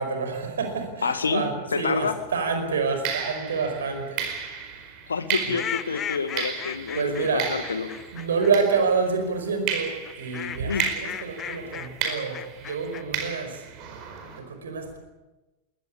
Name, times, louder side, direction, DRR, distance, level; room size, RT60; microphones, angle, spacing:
voice 1, 0.0-4.3 5.5-5.6 6.9-7.5 8.1-13.7 14.3-15.0, right 5 dB, 65° right, 6 dB, 5.1 m, -27 dB
voice 2, 1.0-1.4 1.7-2.1 5.1-7.9 10.7-10.9, left 5 dB, 75° left, 11 dB, 1.8 m, -28 dB
sound 1, 1.9-2.1 3.0-9.2 9.7-14.4, right 7 dB, 40° right, 4.7 m, -34 dB
sound 2, 5.5-8.8 10.0-13.0, left 9 dB, 25° left, 1.0 m, -36 dB
21.5 x 19.5 x 8.4 m, 1.1 s
figure-of-eight pair, 90°, 0 cm